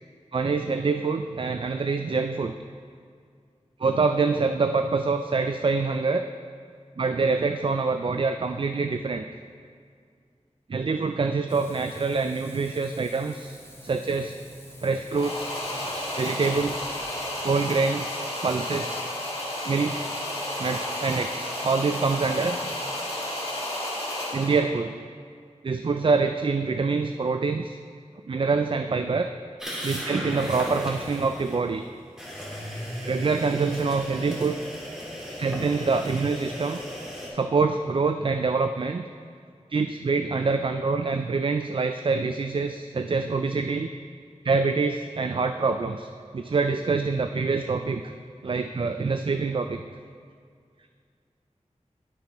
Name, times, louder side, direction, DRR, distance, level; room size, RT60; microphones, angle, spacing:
voice 1, 0.3-2.5 3.8-6.3 7.0-9.3 10.7-13.6 13.8-14.4 14.8-15.5 15.8-17.0 17.4-19.0 19.7-20.1 20.6-22.6 24.3-24.9 25.6-27.8 28.3-29.3 29.8-31.8 33.0-34.6 35.4-36.8 37.3-39.1 39.7-43.9 44.4-46.1 46.3-48.0 48.4-49.8, right 4 dB, 45° right, 7 dB, 0.3 m, -25 dB
Frying (food), 11.5-17.8, equal, 20° left, 1.4 m, -47 dB
sound 1, 15.1-24.7, left 1 dB, 55° left, 2.1 m, -32 dB
sound 2, 29.6-31.6 32.2-37.3, equal, 5° right, 2.3 m, -36 dB
9.7 x 8.6 x 3.0 m, 2.2 s
cardioid pair, 40°, 12 cm